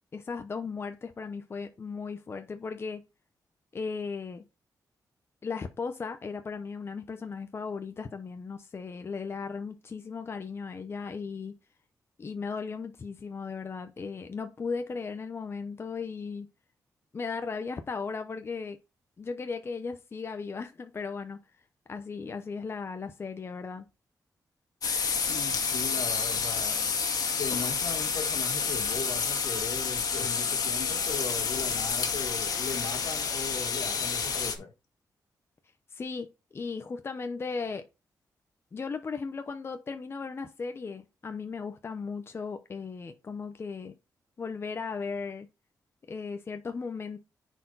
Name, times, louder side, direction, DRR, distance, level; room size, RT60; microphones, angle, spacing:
voice 1, 0.1-3.0 3.7-4.4 5.4-11.5 12.2-16.5 17.1-18.8 19.2-21.4 21.9-23.9 35.9-37.8 38.7-43.9 44.4-45.5 46.1-47.2, left 5 dB, 35° left, 0.8 m, -36 dB
sound 1, 24.8-34.6, left 5 dB, 60° left, 1.8 m, -29 dB
voice 2, 25.3-26.9 27.4-34.7, left 5 dB, 75° left, 1.9 m, -38 dB
9.9 x 4.6 x 4.0 m
wide cardioid pair, 115°, 7 cm